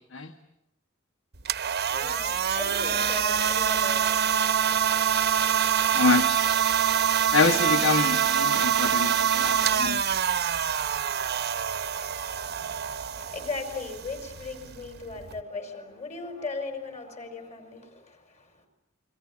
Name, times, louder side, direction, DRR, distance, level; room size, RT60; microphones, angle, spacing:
sound 1, 1.3-15.4, right 8 dB, 50° right, 1.0 m, -25 dB
voice 1, 1.8-4.0 13.2-18.7, left 3 dB, 35° left, 5.2 m, -37 dB
voice 2, 5.9-6.4 7.3-10.0, left 4 dB, 65° left, 1.4 m, -25 dB
28.5 x 22.5 x 8.7 m
head